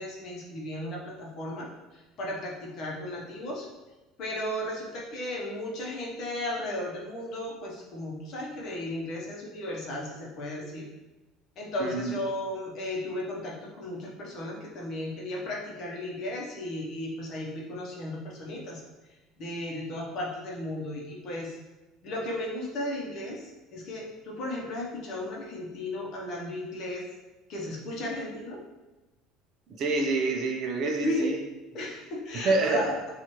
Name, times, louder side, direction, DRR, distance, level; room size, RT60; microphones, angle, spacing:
voice 1, 0.0-3.7 4.2-10.8 11.6-18.8 19.4-21.6 22.0-27.1 27.5-28.6 31.0-31.3 31.7-33.1, left 1 dB, 45° left, -2 dB, 0.8 m, -35 dB
voice 2, 11.8-12.1 29.8-31.4 32.4-32.9, right 3 dB, 40° right, 2 dB, 0.4 m, -27 dB
3.0 x 2.4 x 4.3 m, 1.1 s
cardioid pair, 170°, 0 cm